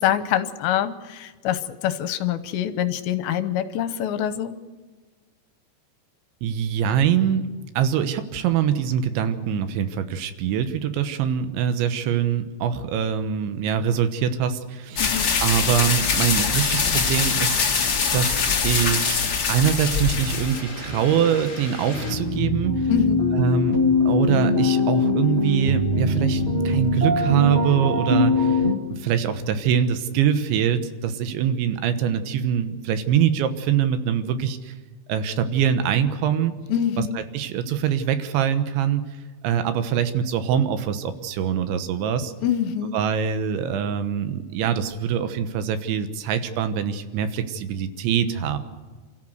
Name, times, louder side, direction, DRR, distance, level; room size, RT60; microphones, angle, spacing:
voice 1, 0.0-4.6 15.0-15.4 22.9-23.3 36.7-37.2 42.4-43.0, left 10 dB, 75° left, 12 dB, 3.0 m, -25 dB
voice 2, 6.4-7.5 7.8-15.1 15.4-22.7 23.3-28.6 28.9-34.7 35.1-36.5 37.2-39.1 39.4-42.3 42.9-48.6, right 8 dB, 80° right, 10 dB, 3.5 m, -24 dB
sound 1, 15.0-20.6, left 6 dB, 50° left, 1.3 m, -23 dB
sound 2, 15.1-22.2, left 2 dB, 25° left, 5.0 m, -37 dB
sound 3, 21.9-28.8, left 2 dB, 30° right, 1.2 m, -22 dB
28.0 x 14.0 x 8.0 m, 1.4 s
omnidirectional pair, 5.3 m